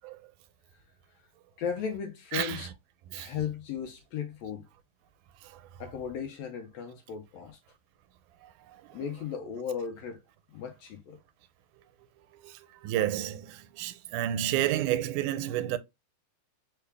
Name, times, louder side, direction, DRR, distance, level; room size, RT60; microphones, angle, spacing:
voice 1, 1.6-2.7 3.1-4.7 5.8-7.6 8.9-10.2 10.5-11.2, left 7 dB, 75° left, 1.6 m, -36 dB
voice 2, 2.3-2.6 3.1-3.3 5.5-5.6 12.4-15.8, right 12 dB, 85° right, 2.0 m, -30 dB
4.6 x 2.3 x 3.2 m
omnidirectional pair, 3.4 m